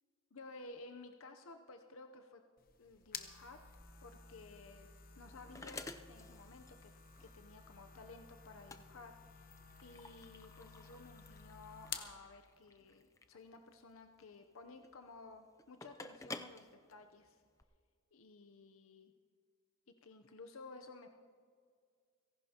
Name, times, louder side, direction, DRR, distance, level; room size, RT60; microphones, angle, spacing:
voice 1, 0.3-2.4 2.8-3.6 4.0-4.9 5.2-9.4 9.8-17.4 18.1-19.1 20.0-21.2, left 3 dB, 85° left, 6 dB, 0.8 m, -55 dB
sound 1, 2.6-12.2, left 7 dB, 45° left, 1.0 m, -52 dB
sound 2, 4.9-17.6, left 3 dB, 15° left, 0.5 m, -53 dB
30.0 x 11.0 x 2.9 m, 2.1 s
head